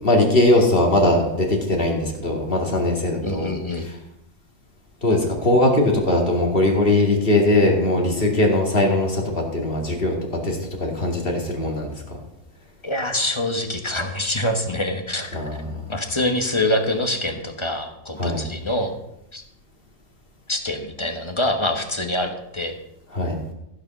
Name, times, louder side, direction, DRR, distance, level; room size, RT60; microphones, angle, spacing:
voice 1, 0.0-3.5 5.0-10.1 10.4-12.2 15.3-15.9 18.2-18.4 23.1-23.3, left 1 dB, 45° left, 1 dB, 2.5 m, -20 dB
voice 2, 3.2-3.9 12.8-15.4 15.9-19.0 19.3-19.4 20.5-22.8, left 1 dB, 20° left, 5 dB, 1.2 m, -25 dB
15.0 x 6.6 x 6.1 m, 0.87 s
omnidirectional pair, 1.4 m